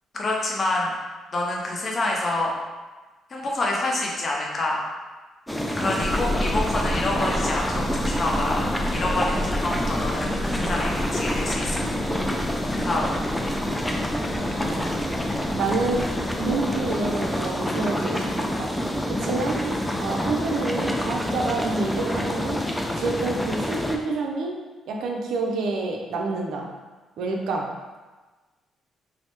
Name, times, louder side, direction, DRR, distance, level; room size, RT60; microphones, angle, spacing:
voice 1, 0.1-0.9 1.3-2.5 3.3-4.8 5.8-8.6 8.9-12.0 12.8-13.1, left 2 dB, 40° left, -2 dB, 0.6 m, -27 dB
sound 1, 5.5-24.0, left 1 dB, 5° left, 0.3 m, -27 dB
sound 2, 6.0-17.6, equal, 70° left, 1.0 m, -32 dB
voice 2, 14.6-14.9 15.5-16.1 16.4-18.7 19.1-19.7 20.0-22.6 23.0-24.6 24.9-26.7 27.2-27.7, right 3 dB, 75° right, 1 dB, 0.4 m, -28 dB
3.1 x 2.0 x 2.9 m, 1.3 s
cardioid pair, 90°, 0 cm